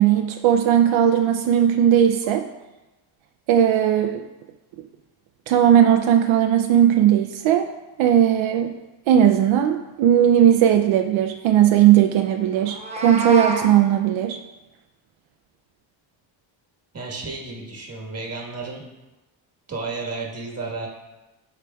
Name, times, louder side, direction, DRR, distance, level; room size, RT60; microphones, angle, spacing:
voice 1, 0.0-2.4 3.5-4.2 5.5-7.7 8.0-8.7 9.1-14.4, right 10 dB, 75° right, 5 dB, 0.6 m, -17 dB
Meow, 12.6-13.7, right 3 dB, 15° right, 0.8 m, -27 dB
voice 2, 16.9-18.8 19.7-20.9, right 3 dB, 30° right, -2 dB, 1.4 m, -32 dB
13.0 x 4.8 x 2.3 m, 1.1 s
cardioid pair, 140°, 48 cm